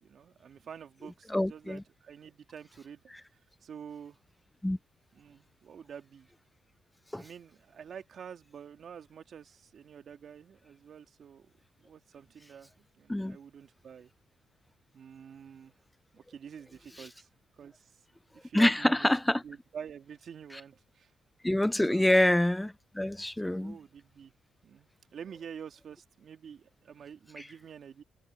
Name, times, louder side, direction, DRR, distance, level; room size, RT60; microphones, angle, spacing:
voice 1, 0.0-3.0 3.3-4.2 5.1-6.3 7.1-11.5 11.8-14.1 14.9-15.7 16.1-17.3 17.6-17.9 18.3-19.1 19.4-21.1 21.9-22.2 23.4-24.3 24.6-28.0, right 7 dB, 55° right, 2.4 m, -48 dB
voice 2, 1.3-1.8 4.6-4.8 7.1-7.2 13.1-13.4 18.5-19.4 21.4-23.8, left 1 dB, 5° left, 0.4 m, -26 dB
cardioid pair, 90°, 0 cm